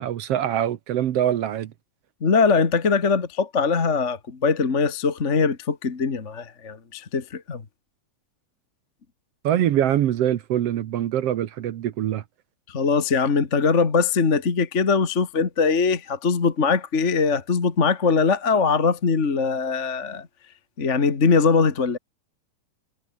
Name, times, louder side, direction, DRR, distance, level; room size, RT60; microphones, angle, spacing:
voice 1, 0.0-1.7 9.4-12.2, right 11 dB, 65° right, 1.8 m, -23 dB
voice 2, 2.2-7.6 12.7-20.3 20.8-22.0, left 5 dB, 30° left, 1.7 m, -21 dB
omnidirectional pair, 3.4 m